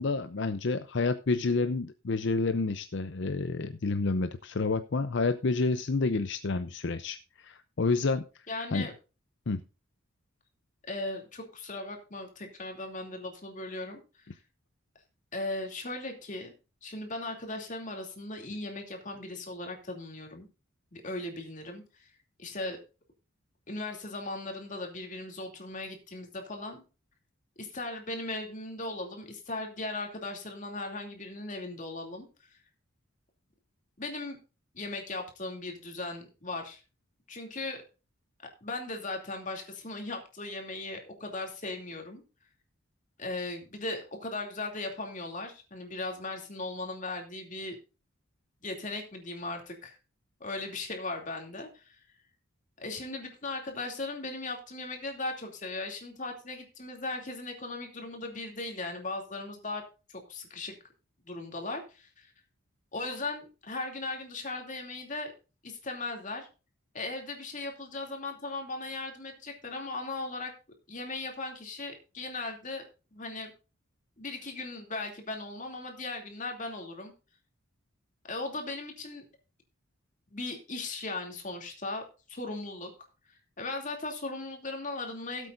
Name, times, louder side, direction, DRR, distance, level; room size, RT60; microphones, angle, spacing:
voice 1, 0.0-8.2 8.7-8.9 9.5-9.6, left 3 dB, 60° left, 10 dB, 0.6 m, -29 dB
voice 2, 8.5-8.9 10.9-14.0 15.3-16.5 16.8-20.5 20.9-22.1 22.4-22.8 23.7-26.8 27.6-32.3 34.0-34.4 34.7-36.8 37.3-37.8 38.6-42.2 43.2-47.8 48.6-50.0 50.4-52.0 52.8-59.8 60.1-60.7 61.2-62.3 62.9-65.3 65.6-66.5 66.9-70.5 70.9-72.8 73.1-73.5 74.2-77.1 78.3-79.2 80.3-82.9 83.6-85.5, left 2 dB, 40° left, 3 dB, 2.6 m, -38 dB
17.5 x 8.2 x 2.5 m, 0.32 s
head